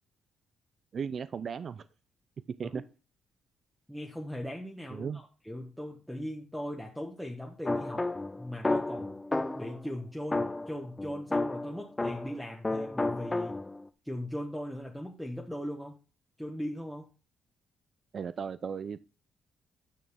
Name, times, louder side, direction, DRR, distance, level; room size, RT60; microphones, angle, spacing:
voice 1, 0.9-1.9 2.6-2.8 4.9-5.2 18.1-19.0, right 6 dB, 50° right, 0.4 m, -36 dB
voice 2, 3.9-8.1 8.4-9.2 9.5-13.6 14.0-16.0 16.4-17.1, equal, ahead, 1.2 m, -39 dB
sound 1, 7.7-9.8 10.3-12.4 12.6-13.8, left 2 dB, 15° left, 0.6 m, -32 dB
9.5 x 6.4 x 3.5 m
cardioid pair, 90°, 0 cm